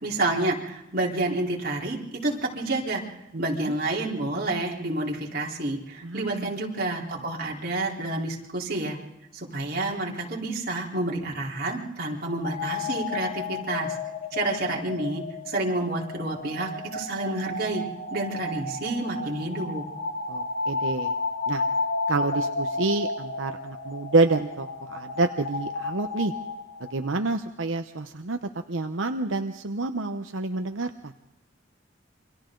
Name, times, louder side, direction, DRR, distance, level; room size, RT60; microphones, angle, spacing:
voice 1, 0.0-3.0 3.4-9.0 9.3-14.0 14.3-17.8 18.1-19.8, right 2 dB, 50° right, -2 dB, 4.0 m, -29 dB
voice 2, 3.3-3.7 6.0-6.5 20.3-21.1 21.5-21.6 22.1-26.3 26.8-31.1, right 3 dB, 80° right, 6 dB, 0.9 m, -28 dB
sound 1, 12.4-27.1, left 3 dB, 50° left, 2.5 m, -32 dB
28.0 x 25.0 x 3.9 m, 0.95 s
head